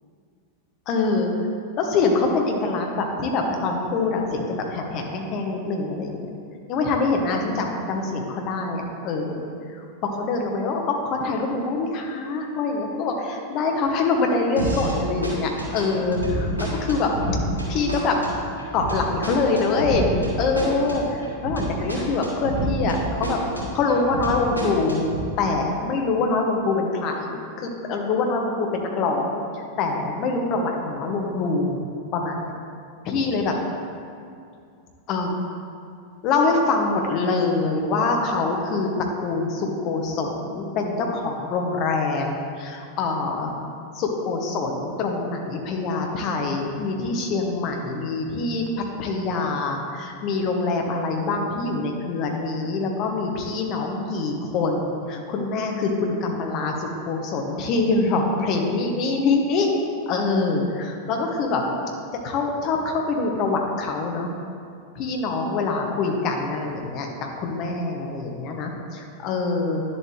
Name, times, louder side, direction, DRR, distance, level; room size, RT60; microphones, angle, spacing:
voice 1, 0.9-1.3 1.8-6.2 6.7-9.5 10.0-17.1 17.7-18.2 18.7-20.1 20.4-23.4 23.7-25.0 25.4-29.4 29.8-31.8 32.1-32.5 33.0-33.5 35.1-35.4 36.2-38.9 39.2-43.6 43.9-48.6 49.0-59.7 60.1-61.6 62.2-64.3 64.9-69.8, left 3 dB, 40° left, 2 dB, 1.2 m, -24 dB
sound 1, 14.6-15.0 15.2-23.0 23.2-25.2, right 1 dB, 85° right, 2.3 m, -28 dB
10.5 x 7.2 x 3.3 m, 2.4 s
figure-of-eight pair, 90°, 0 cm